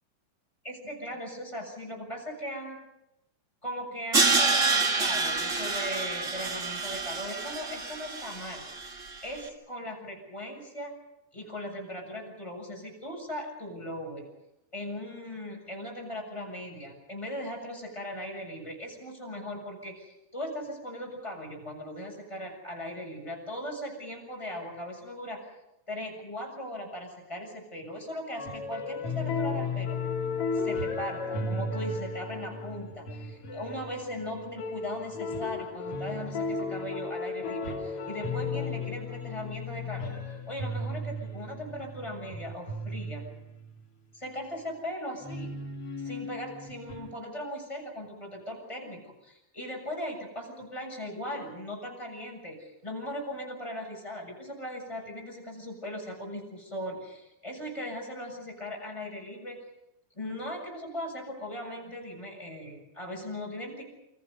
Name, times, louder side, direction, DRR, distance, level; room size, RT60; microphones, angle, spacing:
voice 1, 0.6-2.8 3.6-8.6 9.2-10.9 11.3-14.3 14.7-25.4 25.9-30.0 30.5-40.1 40.5-43.2 44.1-45.5 46.0-59.6 60.1-63.8, equal, 5° left, 0 dB, 7.2 m, -38 dB
Crash cymbal, 4.1-9.2, right 4 dB, 45° right, 0.9 m, -28 dB
sound 1, 28.4-43.8 45.2-47.1, left 3 dB, 40° left, 3.3 m, -35 dB
28.5 x 26.0 x 5.5 m, 0.89 s
omnidirectional pair, 4.6 m